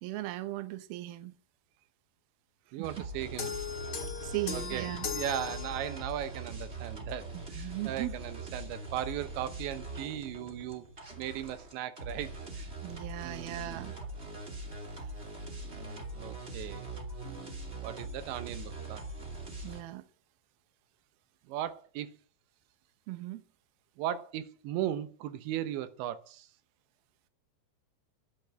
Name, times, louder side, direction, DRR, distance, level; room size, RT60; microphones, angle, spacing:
voice 1, 0.0-1.4 2.8-3.1 4.2-5.1 7.3-8.2 12.8-13.9 19.6-20.0 23.1-23.4, right 16 dB, 70° right, 2.6 m, -38 dB
voice 2, 2.7-3.5 4.5-10.9 11.2-12.7 13.2-13.9 15.6-16.9 17.8-19.0 21.5-22.1 24.0-26.5, right 11 dB, 90° right, 3.3 m, -37 dB
sound 1, 2.8-19.8, right 2 dB, 25° right, 1.5 m, -42 dB
sound 2, 3.4-6.3, left 7 dB, 50° left, 1.4 m, -38 dB
11.0 x 9.2 x 8.9 m
omnidirectional pair, 5.1 m